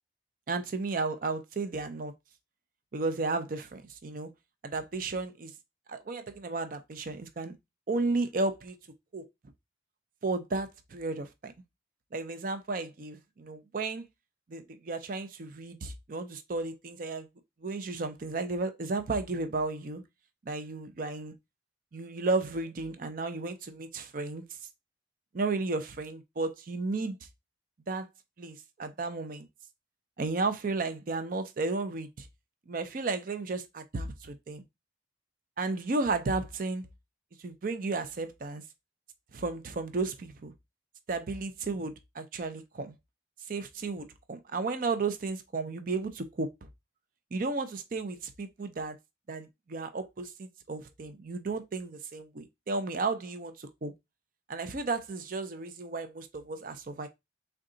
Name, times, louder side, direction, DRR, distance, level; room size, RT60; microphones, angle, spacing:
voice 1, 0.5-2.1 2.9-4.3 4.6-5.5 5.9-7.5 7.9-8.8 9.1-9.3 10.2-11.5 12.1-14.0 14.5-17.3 17.6-20.0 20.5-21.3 21.9-24.4 25.3-27.2 27.9-28.1 28.4-29.5 30.2-32.3 32.7-34.6 35.6-36.9 37.4-38.6 39.3-40.5 41.1-42.9 43.5-46.5 47.3-49.0 49.3-53.9 54.5-57.1, right 3 dB, 45° right, 0.5 m, -33 dB
3.7 x 2.3 x 3.7 m
head